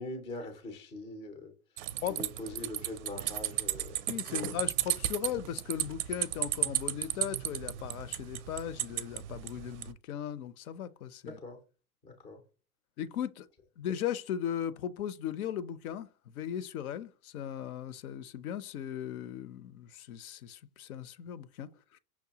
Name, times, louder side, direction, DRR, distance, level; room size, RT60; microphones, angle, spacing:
voice 1, 0.0-4.0 4.3-4.5 11.2-11.6 12.0-12.4, left 2 dB, 10° left, 0.3 m, -43 dB
sound 1, 1.8-9.9, right 13 dB, 50° right, 0.4 m, -34 dB
voice 2, 4.1-11.4 13.0-13.5 13.8-22.0, left 10 dB, 70° left, 0.6 m, -37 dB
5.8 x 2.2 x 2.7 m
hypercardioid pair, 125°, 46 cm